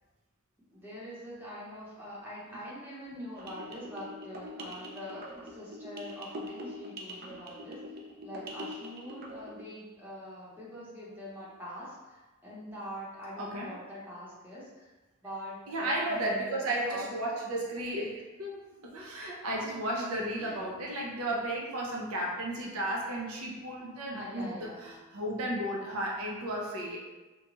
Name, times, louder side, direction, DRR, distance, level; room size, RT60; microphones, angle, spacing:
voice 1, 0.7-8.0 8.2-14.9 15.2-16.3 16.6-17.1 19.8-20.6 24.1-25.0, equal, 10° right, -8 dB, 0.8 m, -44 dB
sound 1, 3.3-9.6, equal, 45° right, 0.3 m, -44 dB
voice 2, 13.4-13.7 15.7-27.0, right 1 dB, 85° right, -2 dB, 0.6 m, -34 dB
2.8 x 2.2 x 2.9 m, 1.2 s
head